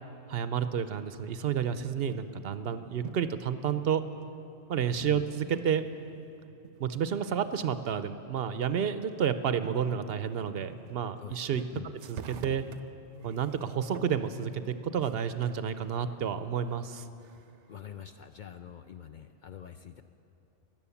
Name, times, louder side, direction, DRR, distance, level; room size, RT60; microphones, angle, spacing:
voice 1, 0.3-4.0 4.7-5.8 6.8-11.6 12.1-12.7 13.2-17.1, right 8 dB, 65° right, 11 dB, 0.8 m, -30 dB
sound 1, 1.6-2.5 2.9-3.5 4.2-4.3 5.5-7.5 7.8-7.9 9.1-9.2 9.6-11.5 11.9-15.7 16.2-17.8, right 7 dB, 85° right, 1.0 m, -48 dB
voice 2, 11.2-11.9 17.7-20.0, left 9 dB, 55° left, 8 dB, 0.5 m, -45 dB
17.0 x 10.5 x 7.0 m, 3.0 s
omnidirectional pair, 1.2 m